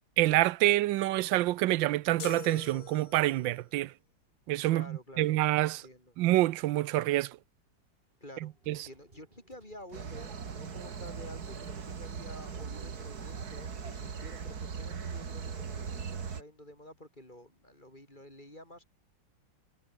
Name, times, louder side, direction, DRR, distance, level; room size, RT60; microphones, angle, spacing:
voice 1, 0.2-3.9 4.5-4.8 5.2-5.8 6.2-7.4 8.7-8.8, right 16 dB, 75° right, 1.3 m, -27 dB
sound 1, 2.2-3.6, left 9 dB, 80° left, 2.2 m, -43 dB
voice 2, 4.7-6.1 8.2-18.8, left 1 dB, 20° left, 7.0 m, -51 dB
sound 2, 7.8-14.0, right 2 dB, 30° right, 4.7 m, -62 dB
sound 3, 9.9-16.4, right 6 dB, 50° right, 2.4 m, -39 dB
omnidirectional pair, 2.1 m